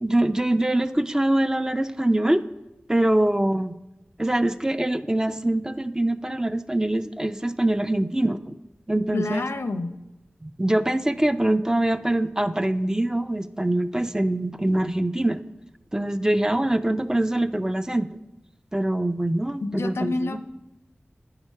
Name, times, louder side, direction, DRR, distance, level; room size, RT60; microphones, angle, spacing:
voice 1, 0.0-2.4 2.9-3.7 4.2-8.4 8.9-9.5 10.4-15.4 15.9-18.1 18.7-20.4, right 1 dB, 15° right, 11 dB, 0.4 m, -23 dB
voice 2, 9.1-9.9 19.6-20.4, left 3 dB, 90° left, 9 dB, 0.5 m, -27 dB
8.9 x 4.8 x 5.4 m, 0.97 s
wide cardioid pair, 70°, 4 cm